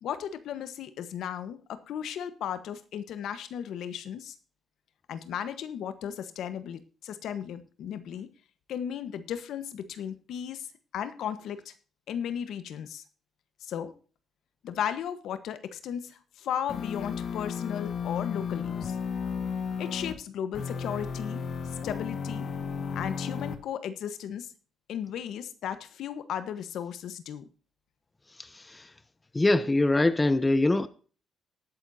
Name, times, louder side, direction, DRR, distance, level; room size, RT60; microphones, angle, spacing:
voice 1, 0.0-4.3 5.1-8.3 8.7-10.7 10.9-11.7 12.1-13.0 13.6-13.9 14.6-18.9 19.8-21.5 21.8-22.6 22.9-24.5 24.9-27.4, left 9 dB, 75° left, 1.2 m, -35 dB
sound 1, 16.7-20.2 20.5-23.5, left 6 dB, 55° left, 1.8 m, -33 dB
voice 2, 28.4-28.9 29.3-30.9, left 2 dB, 20° left, 0.9 m, -24 dB
19.0 x 8.5 x 2.8 m
cardioid pair, 90°, 0 cm